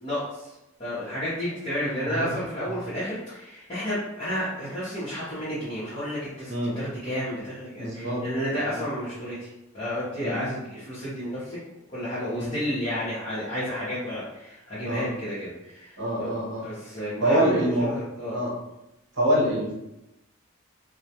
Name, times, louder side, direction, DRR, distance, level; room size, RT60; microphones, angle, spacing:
voice 1, 0.0-0.5 0.8-11.6 11.9-16.3 16.6-18.4, equal, 30° left, -12 dB, 0.7 m, -31 dB
voice 2, 7.8-8.2 8.7-8.8 10.2-10.4 12.3-12.5 14.9-15.1 16.0-16.6 17.2-17.9 18.3-18.5 19.2-19.7, equal, 55° right, -5 dB, 0.8 m, -25 dB
2.2 x 2.1 x 2.8 m, 0.92 s
head